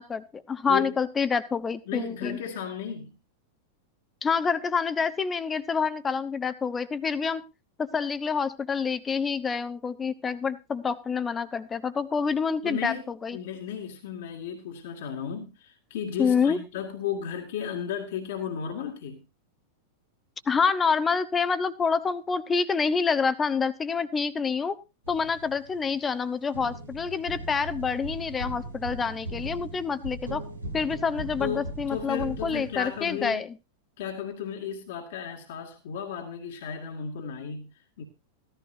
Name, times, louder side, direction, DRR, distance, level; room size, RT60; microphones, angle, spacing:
voice 1, 0.0-2.4 4.2-7.4 7.8-13.4 16.2-16.6 20.5-24.8 25.1-30.4 30.7-33.6, left 5 dB, 20° left, 1.0 m, -27 dB
voice 2, 1.9-3.2 12.6-13.0 13.3-19.3 31.4-33.4 34.0-38.0, left 8 dB, 55° left, 2.0 m, -34 dB
sound 1, 25.0-26.2 26.5-33.3, right 1 dB, 80° right, 2.6 m, -39 dB
15.5 x 14.0 x 2.7 m
figure-of-eight pair, 90°, 0 cm